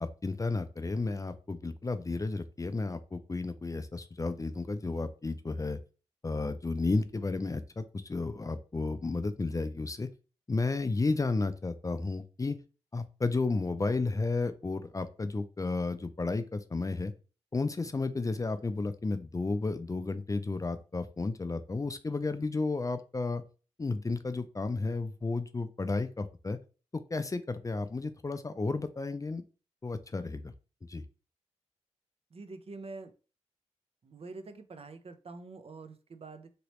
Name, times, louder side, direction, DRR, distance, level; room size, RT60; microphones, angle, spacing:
voice 1, 0.0-5.8 6.2-10.1 10.5-12.6 12.9-17.1 17.5-23.4 23.8-26.6 26.9-29.4 29.8-30.5 30.9-31.0, left 3 dB, 25° left, 11 dB, 0.4 m, -32 dB
voice 2, 32.3-33.1 34.0-36.5, right 3 dB, 55° right, 8 dB, 0.6 m, -46 dB
3.0 x 3.0 x 2.9 m, 0.35 s
cardioid pair, 45°, 12 cm